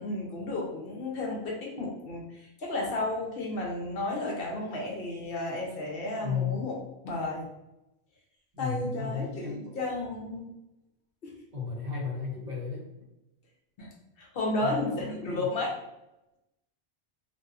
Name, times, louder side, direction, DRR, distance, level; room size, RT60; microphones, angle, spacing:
voice 1, 0.0-6.8 7.0-7.5 8.6-10.5 11.2-11.3 13.8-13.9 14.2-15.7, left 2 dB, 65° left, -2 dB, 0.8 m, -33 dB
voice 2, 6.2-6.5 8.5-9.6 11.5-12.9 14.6-15.5, left 5 dB, 50° right, -5 dB, 0.7 m, -34 dB
2.5 x 2.3 x 2.4 m, 0.91 s
omnidirectional pair, 1.1 m